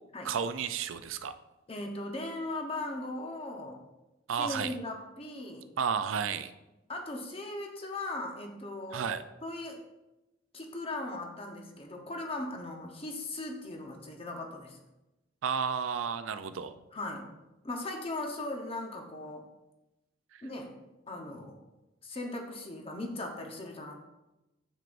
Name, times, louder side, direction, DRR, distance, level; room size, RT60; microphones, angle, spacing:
voice 1, 0.2-1.3 4.3-4.7 5.8-6.5 8.9-9.2 15.4-16.8 20.3-20.4, right 6 dB, 85° right, 11 dB, 0.4 m, -32 dB
voice 2, 1.7-3.8 4.3-5.7 6.9-9.2 9.4-9.8 10.5-14.8 16.9-17.3 17.6-19.4 20.4-20.7 21.1-21.7 22.0-23.9, left 2 dB, 30° left, 2 dB, 0.9 m, -38 dB
7.6 x 7.4 x 2.6 m, 0.98 s
head